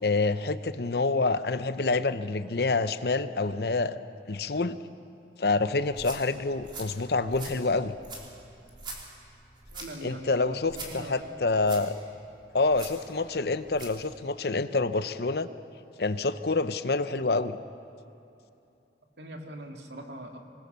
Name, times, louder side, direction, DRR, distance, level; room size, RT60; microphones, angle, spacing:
voice 1, 0.0-4.0 4.3-4.8 5.4-8.0 10.0-12.0 12.5-15.5 16.0-17.6, left 3 dB, 65° left, 12 dB, 0.8 m, -27 dB
sound 1, 5.8-14.0, right 3 dB, 25° right, 3.4 m, -45 dB
voice 2, 9.7-11.3 19.2-20.4, right 1 dB, 75° right, 3 dB, 2.4 m, -42 dB
26.0 x 20.5 x 6.9 m, 2.8 s
head